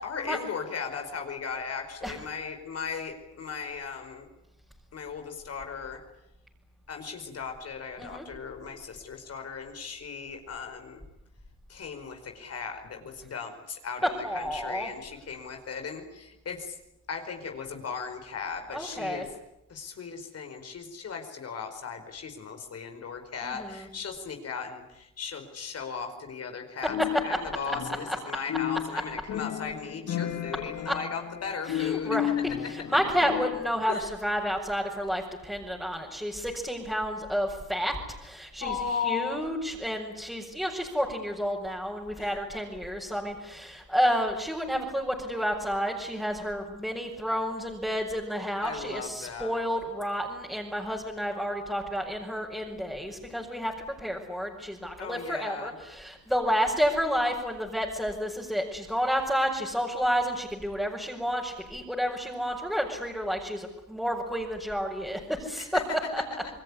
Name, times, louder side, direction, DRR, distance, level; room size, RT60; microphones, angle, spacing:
voice 1, 0.0-4.3 4.9-6.0 6.9-11.0 11.7-16.7 17.1-19.3 19.7-32.2 33.9-34.1 38.6-39.4 42.2-42.4 48.6-49.6 55.0-55.8 65.6-65.8, left 6 dB, 55° left, 5 dB, 5.0 m, -37 dB
voice 2, 14.2-14.9 18.7-19.2 23.4-23.9 30.9-31.0 31.7-32.3 32.7-38.7 39.0-65.7 66.1-66.2, equal, ahead, -3 dB, 5.6 m, -30 dB
sound 1, 26.9-28.2 28.5-33.8, left 11 dB, 70° left, 2.3 m, -33 dB
28.0 x 20.5 x 9.9 m, 0.85 s
cardioid pair, 90°, 30 cm